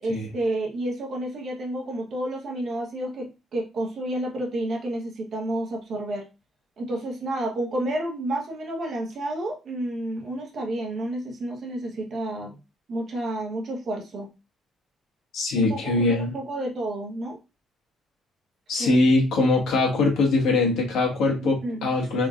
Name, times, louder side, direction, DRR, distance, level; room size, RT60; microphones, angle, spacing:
voice 1, 0.0-6.3 6.8-12.6 12.9-14.3 15.6-17.4 18.8-19.0 21.4-21.9, right 1 dB, 45° right, 0 dB, 1.0 m, -30 dB
voice 2, 15.3-16.3 18.7-22.3, left 2 dB, 85° left, -1 dB, 1.5 m, -22 dB
3.8 x 3.7 x 2.4 m, 0.28 s
cardioid pair, 175°, 0 cm